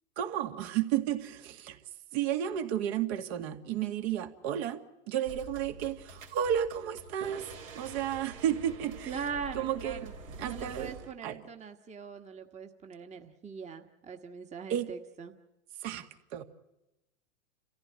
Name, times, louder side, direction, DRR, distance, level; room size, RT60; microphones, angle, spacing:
voice 1, 0.2-1.8 2.1-4.8 5.1-7.5 7.7-9.3 9.5-10.9 11.2-11.4 14.7-14.9 15.8-16.4, right 10 dB, 55° right, 6 dB, 2.2 m, -32 dB
sound 1, 5.2-11.1, right 3 dB, 85° right, 3.9 m, -47 dB
voice 2, 9.1-10.1 10.5-15.3, right 6 dB, 15° right, 5 dB, 1.5 m, -41 dB
29.5 x 15.0 x 9.6 m, 0.95 s
hypercardioid pair, 110°, 39 cm